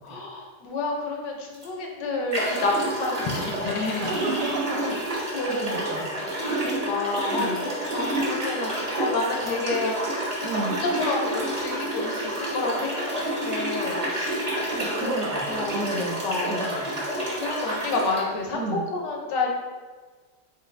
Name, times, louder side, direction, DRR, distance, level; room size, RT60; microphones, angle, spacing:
voice 1, 0.0-4.2 5.3-5.5 5.9-10.0 10.4-10.5 10.9-15.1 15.4-15.8 16.2-16.6 17.2-18.6 18.9-19.5, left 3 dB, 70° left, 0 dB, 1.3 m, -30 dB
sound 1, 1.5-1.7 2.3-18.2, right 1 dB, 30° right, 0.8 m, -29 dB
voice 2, 4.0-6.1 7.3-7.6 10.4-10.8 14.8-17.1 18.5-18.9, right 2 dB, 70° right, 0 dB, 1.2 m, -31 dB
4.2 x 3.8 x 3.2 m, 1.4 s
omnidirectional pair, 2.0 m